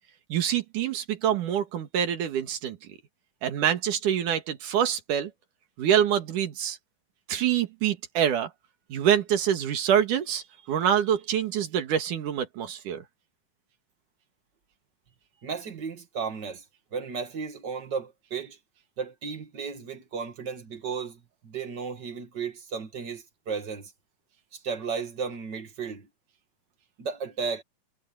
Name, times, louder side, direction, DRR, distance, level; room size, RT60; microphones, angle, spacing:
voice 1, 0.3-2.8 3.4-5.3 5.8-6.8 7.3-8.5 8.9-13.0, right 9 dB, 75° right, 3.3 m, -25 dB
voice 2, 15.4-16.6 16.9-18.6 19.0-23.9 24.5-26.1 27.0-27.6, right 5 dB, 35° right, 2.4 m, -34 dB
omnidirectional pair, 3.8 m